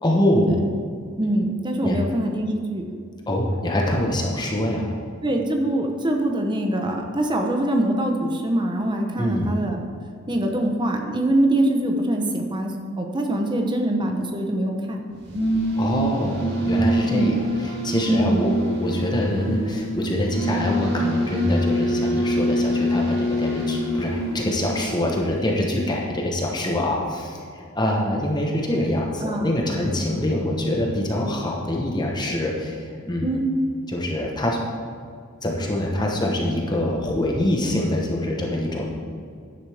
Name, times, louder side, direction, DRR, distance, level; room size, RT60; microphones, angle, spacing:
voice 1, 0.0-0.6 1.8-2.0 3.3-4.9 9.2-9.5 15.8-33.3 33.9-34.6 35.4-38.9, left 1 dB, 20° left, -1 dB, 1.2 m, -24 dB
voice 2, 1.2-2.9 5.2-9.8 10.3-15.0 17.1-17.3 18.1-18.4 29.2-29.5 33.2-33.5, right 1 dB, 20° right, 2 dB, 1.0 m, -23 dB
sound 1, 15.1-25.6, equal, 55° right, 2.3 m, -25 dB
11.5 x 9.6 x 3.5 m, 2.2 s
head